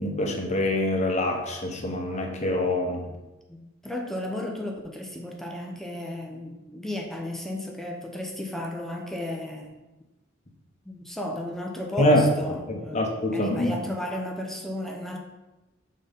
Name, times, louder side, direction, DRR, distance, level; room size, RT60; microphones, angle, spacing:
voice 1, 0.0-3.1 12.0-13.8, left 1 dB, 35° left, 2 dB, 1.0 m, -25 dB
voice 2, 3.5-9.8 10.8-13.0 13.3-15.2, left 1 dB, ahead, 1 dB, 0.7 m, -34 dB
6.1 x 3.8 x 5.3 m, 1.1 s
head